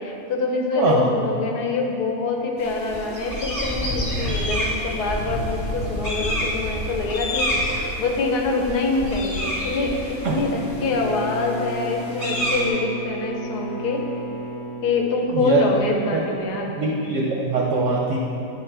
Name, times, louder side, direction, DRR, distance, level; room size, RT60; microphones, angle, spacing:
voice 1, 0.0-14.0 14.8-16.7, left 3 dB, 80° left, 1 dB, 1.3 m, -25 dB
voice 2, 0.8-1.1 10.2-10.4 15.3-15.7 16.1-16.2 16.8-18.2, right 4 dB, 65° right, -2 dB, 0.8 m, -22 dB
sound 1, 2.6-12.7, equal, 25° left, 1.3 m, -28 dB
Bowed string instrument, 10.5-15.8, right 1 dB, 50° left, 0.9 m, -34 dB
8.9 x 4.4 x 3.3 m, 2.8 s
omnidirectional pair, 1.7 m